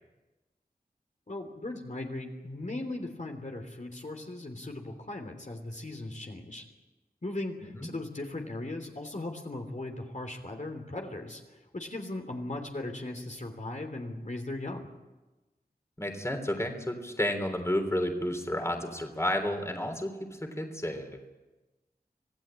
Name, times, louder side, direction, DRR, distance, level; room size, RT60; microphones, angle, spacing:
voice 1, 1.3-6.6 7.2-11.4 11.7-14.9, left 2 dB, 50° left, 3 dB, 3.2 m, -38 dB
voice 2, 16.0-21.2, left 1 dB, 15° left, 5 dB, 3.4 m, -31 dB
26.0 x 16.5 x 9.0 m, 1.1 s
wide cardioid pair, 70°, 17 cm